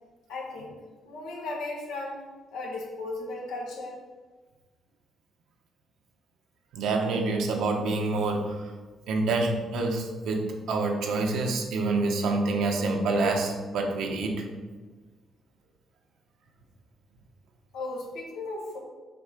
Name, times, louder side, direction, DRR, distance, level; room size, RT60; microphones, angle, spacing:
voice 1, 0.3-0.8 1.0-2.2 2.5-4.0 17.7-18.8, left 2 dB, 90° left, -2 dB, 1.4 m, -36 dB
voice 2, 6.7-8.6 9.1-14.5, right 3 dB, 80° right, 3 dB, 0.9 m, -27 dB
6.1 x 3.6 x 5.0 m, 1.3 s
cardioid pair, 90°, 0 cm